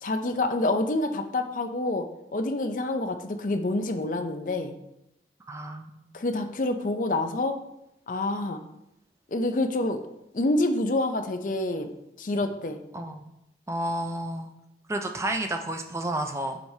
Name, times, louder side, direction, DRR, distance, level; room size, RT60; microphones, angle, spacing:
voice 1, 0.0-4.7 6.1-7.6 8.1-8.6 9.3-10.0 10.3-11.9 12.2-12.8, left 2 dB, 45° left, 7 dB, 0.5 m, -27 dB
voice 2, 5.5-6.0 12.9-13.3 13.7-14.5 14.9-16.6, right 1 dB, 15° right, 5 dB, 0.4 m, -31 dB
7.9 x 4.6 x 2.7 m, 0.84 s
head